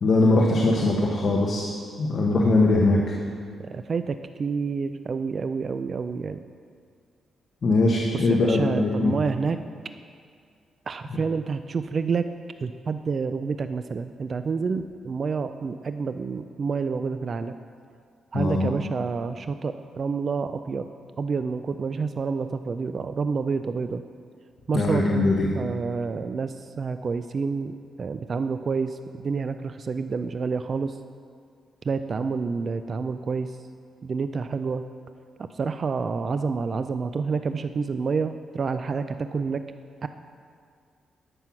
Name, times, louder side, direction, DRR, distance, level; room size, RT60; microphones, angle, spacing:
voice 1, 0.0-1.7 2.0-3.0 7.6-9.1 18.3-18.7 24.7-25.5, left 2 dB, 45° left, -2 dB, 1.1 m, -21 dB
voice 2, 3.6-6.4 8.1-9.6 10.9-12.2 12.6-17.6 18.3-20.9 21.2-24.0 24.7-31.0 31.8-33.6 34.0-34.8 35.4-39.6 40.0-40.1, right 5 dB, 40° right, 10 dB, 0.3 m, -28 dB
11.0 x 6.1 x 5.9 m, 2.2 s
cardioid pair, 120°, 0 cm